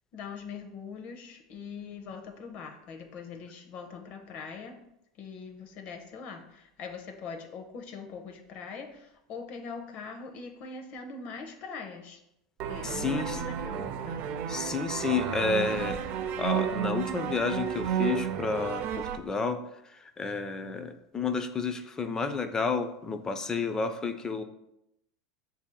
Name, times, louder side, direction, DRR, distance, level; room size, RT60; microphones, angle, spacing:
voice 1, 0.1-4.8 5.2-12.2 12.6-14.3, left 5 dB, 50° left, 4 dB, 0.7 m, -42 dB
sound 1, 12.6-19.2, right 8 dB, 55° right, 0.4 m, -32 dB
voice 2, 12.8-13.4 14.5-16.0 16.4-19.6 19.9-24.4, left 4 dB, 20° left, 8 dB, 0.4 m, -31 dB
7.0 x 2.7 x 2.2 m, 0.83 s
hypercardioid pair, 100°, 3 cm